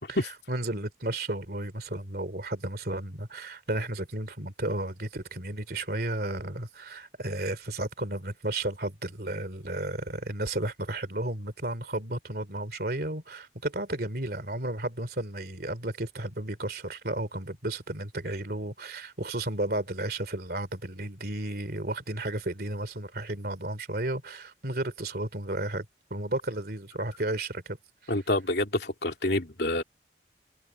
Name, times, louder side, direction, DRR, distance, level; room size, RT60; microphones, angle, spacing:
voice 1, 0.5-27.8 28.0-28.1, right 1 dB, 55° right, 3.0 m, -33 dB
voice 2, 28.1-29.8, left 1 dB, 65° left, 2.8 m, -27 dB
head